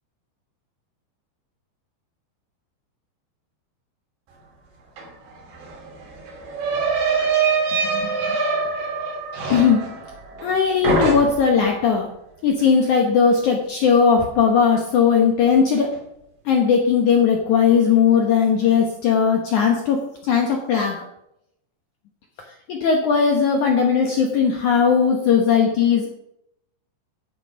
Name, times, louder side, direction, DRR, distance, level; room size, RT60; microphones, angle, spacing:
sound 1, 5.0-5.1 5.3-10.6 10.8-11.6, right 4 dB, 70° right, 4.9 m, -24 dB
voice 1, 9.5-10.0 10.4-12.1 12.4-15.9 16.5-21.0 22.7-26.1, left 6 dB, 75° left, 1 dB, 1.8 m, -18 dB
12.0 x 8.4 x 5.2 m, 0.79 s
omnidirectional pair, 5.1 m